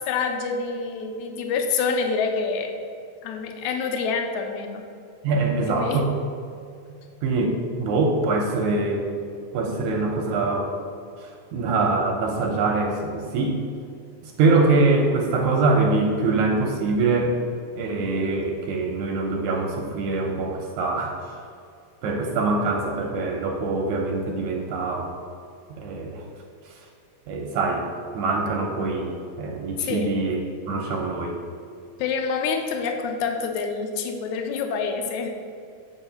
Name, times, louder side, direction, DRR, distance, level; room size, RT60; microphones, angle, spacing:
voice 1, 0.0-2.7 3.2-4.8 5.7-6.0 29.8-30.1 32.0-35.3, left 5 dB, 75° left, 4 dB, 1.8 m, -27 dB
voice 2, 5.2-6.1 7.2-9.1 9.5-10.7 11.2-13.6 14.2-17.4 17.8-21.2 22.0-25.1 25.8-26.2 27.3-27.9 28.1-30.4 30.7-31.4, right 3 dB, 75° right, 1 dB, 1.9 m, -24 dB
7.9 x 4.7 x 5.7 m, 2.4 s
omnidirectional pair, 3.9 m